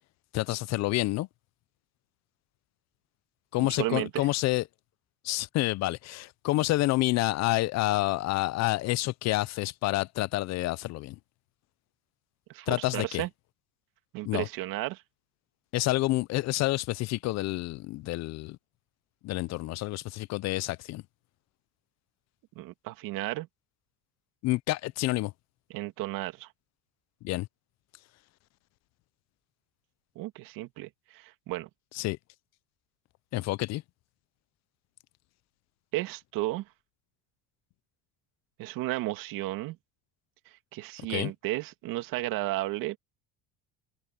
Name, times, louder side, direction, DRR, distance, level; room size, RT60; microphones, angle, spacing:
voice 1, 0.3-1.3 3.5-4.6 5.2-11.2 12.7-13.2 14.2-14.5 15.7-18.6 19.2-21.0 24.4-25.3 27.2-27.5 31.9-32.2 33.3-33.8 41.1-41.3, left 18 dB, 50° left, 0.4 m, -28 dB
voice 2, 3.6-4.3 12.5-13.3 14.1-15.0 22.6-23.5 25.7-26.5 30.2-31.7 35.9-36.6 38.6-39.8 40.7-43.0, right 17 dB, 70° right, 2.3 m, -33 dB
cardioid pair, 145°, 35 cm